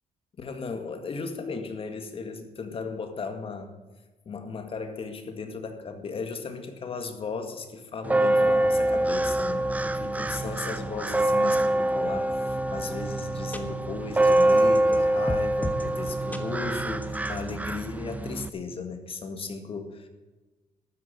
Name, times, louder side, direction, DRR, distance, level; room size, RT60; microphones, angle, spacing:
voice 1, 0.4-3.8 4.3-20.1, left 4 dB, 45° left, 7 dB, 1.9 m, -36 dB
sound 1, 8.0-18.5, right 1 dB, 10° right, 0.7 m, -25 dB
sound 2, 12.8-12.9 13.2-13.3 13.5-13.6 14.2-15.0 15.3-15.9 16.3-16.4 17.0-17.5, left 1 dB, 10° left, 1.3 m, -35 dB
12.5 x 9.1 x 8.1 m, 1.2 s
cardioid pair, 110°, 14 cm